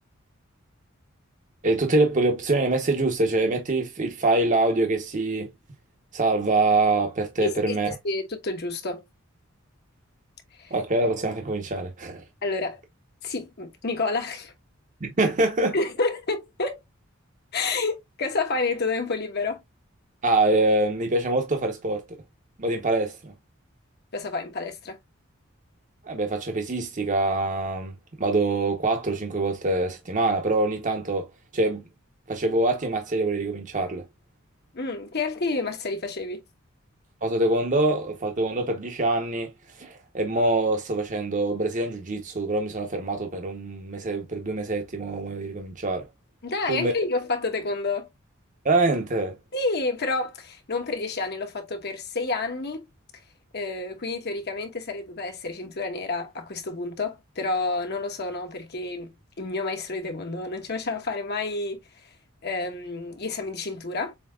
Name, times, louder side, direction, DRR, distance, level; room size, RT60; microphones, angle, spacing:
voice 1, 1.6-5.5 6.1-7.9 10.7-12.2 15.0-15.7 20.2-22.0 22.6-23.3 26.0-27.9 28.2-31.8 32.3-34.0 37.2-39.5 39.8-46.1 46.7-46.9 48.6-49.4, right 2 dB, 40° right, 0.8 m, -24 dB
voice 2, 7.4-9.0 10.5-10.7 12.4-12.8 13.2-14.5 15.7-16.8 17.5-19.6 24.1-25.0 34.7-36.4 46.4-48.1 49.5-52.9 53.5-62.2 62.4-64.1, left 3 dB, 55° left, 1.1 m, -29 dB
7.1 x 2.8 x 2.3 m
head